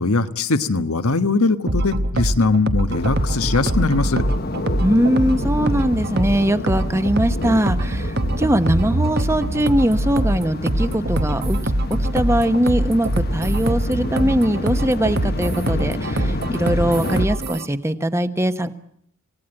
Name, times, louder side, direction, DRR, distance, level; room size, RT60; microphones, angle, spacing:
voice 1, 0.0-4.2, left 3 dB, 85° left, 9 dB, 1.4 m, -20 dB
sound 1, 1.7-17.7, right 1 dB, 45° right, 1.1 m, -23 dB
sound 2, 2.9-17.3, left 2 dB, 45° left, 1.1 m, -30 dB
voice 2, 4.8-11.6 11.9-18.7, equal, 10° right, 10 dB, 1.1 m, -21 dB
26.5 x 18.0 x 9.0 m, 0.72 s
head